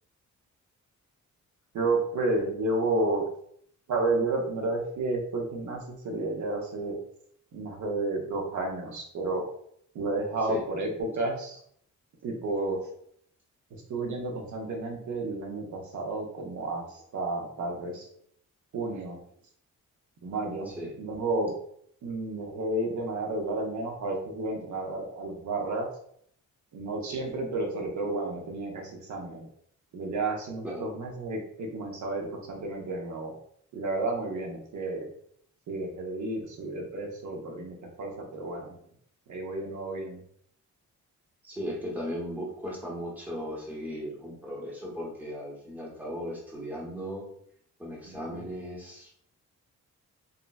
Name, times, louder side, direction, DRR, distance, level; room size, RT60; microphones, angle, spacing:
voice 1, 1.7-3.3 3.9-7.0 7.5-9.4 9.9-11.6 12.2-12.8 13.7-18.1 18.7-19.2 20.2-21.5 22.0-25.9 26.7-29.5 29.9-33.3 33.7-35.1 35.7-38.8 39.3-40.2 48.0-48.4, right 2 dB, 70° right, 1 dB, 0.7 m, -31 dB
voice 2, 41.4-47.3 47.8-49.1, equal, 5° right, -4 dB, 0.7 m, -37 dB
3.8 x 2.0 x 2.2 m, 0.65 s
wide cardioid pair, 145°, 31 cm